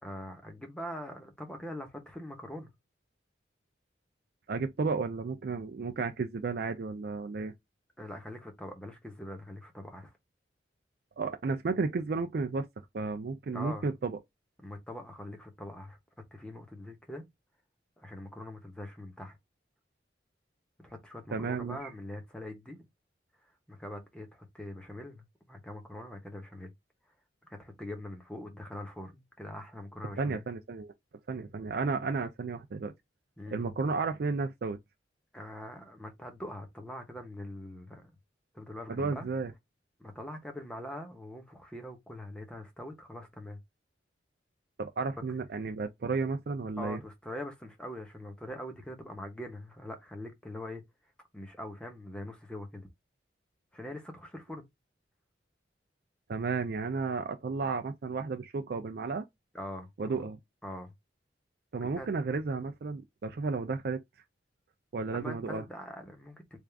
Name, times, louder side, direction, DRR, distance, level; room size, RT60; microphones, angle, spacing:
voice 1, 0.0-2.7 8.0-10.1 13.5-13.9 14.6-16.0 16.3-17.2 18.0-19.4 20.8-22.9 23.7-26.7 27.4-30.4 33.4-33.6 35.3-38.1 38.5-39.3 40.0-43.6 46.8-50.8 51.3-52.9 53.7-54.7 59.5-60.3 60.6-60.9 61.8-62.1 65.1-66.6, left 1 dB, 5° left, 0.8 m, -43 dB
voice 2, 4.5-7.5 11.2-12.7 12.9-14.2 21.3-21.9 30.2-30.9 31.3-32.9 33.5-34.8 38.9-39.5 44.8-47.0 56.3-59.3 60.0-60.4 61.7-64.0 64.9-65.6, right 4 dB, 55° right, 0.4 m, -33 dB
3.5 x 2.4 x 3.3 m
head